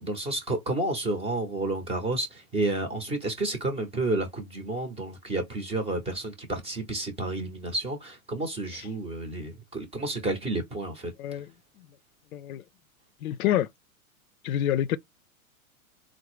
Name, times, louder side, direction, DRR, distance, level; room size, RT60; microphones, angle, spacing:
voice 1, 0.0-11.1, right 2 dB, 15° right, 0.6 m, -30 dB
voice 2, 11.2-11.5 12.3-12.6 13.2-13.7 14.4-15.0, left 11 dB, 75° left, 0.5 m, -27 dB
3.8 x 2.0 x 2.9 m
hypercardioid pair, 125°, 42 cm